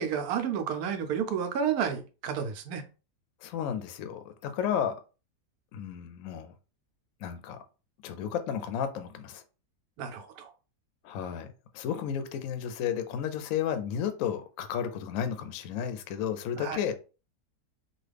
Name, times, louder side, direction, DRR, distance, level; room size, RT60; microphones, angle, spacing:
voice 1, 0.0-2.9 10.0-10.5 16.6-16.8, right 7 dB, 75° right, 1.0 m, -31 dB
voice 2, 3.4-4.9 5.7-6.5 7.2-7.6 8.0-9.4 11.0-16.9, left 8 dB, 70° left, 0.8 m, -33 dB
3.0 x 2.3 x 3.3 m
omnidirectional pair, 1.7 m